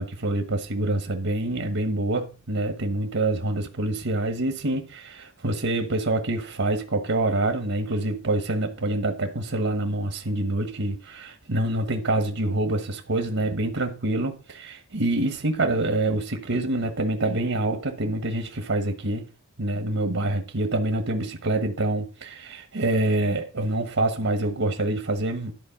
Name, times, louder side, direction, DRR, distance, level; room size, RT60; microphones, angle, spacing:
voice 1, 0.0-19.3 19.6-25.5, right 2 dB, 70° right, 1.2 m, -26 dB
12.0 x 4.5 x 5.8 m
head